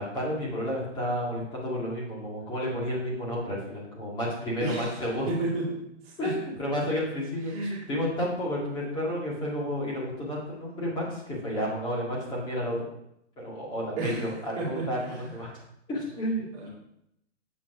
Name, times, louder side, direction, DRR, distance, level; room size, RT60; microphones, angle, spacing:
voice 1, 0.0-5.3 6.2-7.5 7.9-12.9 13.4-15.5 15.9-16.7, equal, 10° left, -5 dB, 2.0 m, -31 dB
voice 2, 4.6-6.4 7.4-7.9 14.0-15.3 16.1-16.2 16.5-16.7, right 2 dB, 30° right, -4 dB, 2.6 m, -33 dB
7.5 x 5.5 x 4.9 m, 0.78 s
hypercardioid pair, 165°, 36 cm